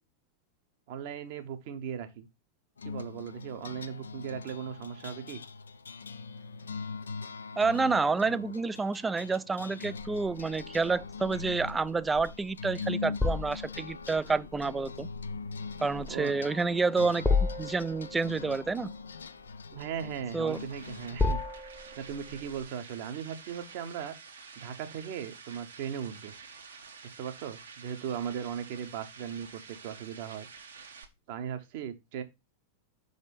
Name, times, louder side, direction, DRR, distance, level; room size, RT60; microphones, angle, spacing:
voice 1, 0.9-2.3 2.8-5.4 16.1-16.3 19.7-21.4 22.0-24.1 24.6-26.3 27.0-30.5 31.3-32.2, right 8 dB, 50° right, 1.0 m, -38 dB
sound 1, 2.8-21.3, left 4 dB, 70° left, 0.4 m, -42 dB
voice 2, 7.6-15.1 15.8-17.2 17.6-18.9 20.3-20.6, right 4 dB, 10° right, 0.3 m, -29 dB
sound 2, 10.0-22.7, left 4 dB, 10° left, 0.9 m, -35 dB
sound 3, 20.1-31.0, right 5 dB, 70° right, 1.2 m, -50 dB
5.9 x 4.0 x 5.2 m
figure-of-eight pair, 90°, 0 cm